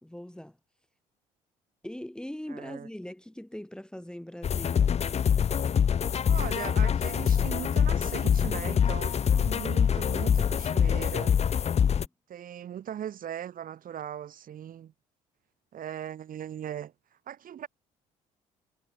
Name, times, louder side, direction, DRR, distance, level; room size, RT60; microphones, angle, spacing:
voice 1, 0.0-0.6 1.8-5.0, left 1 dB, 5° left, 2.2 m, -41 dB
voice 2, 2.5-2.9 6.3-11.4 12.3-14.9 15.7-16.9 17.3-17.7, right 10 dB, 55° right, 3.3 m, -39 dB
sound 1, 4.4-12.1, left 8 dB, 40° left, 0.8 m, -25 dB
hypercardioid pair, 60°, 17 cm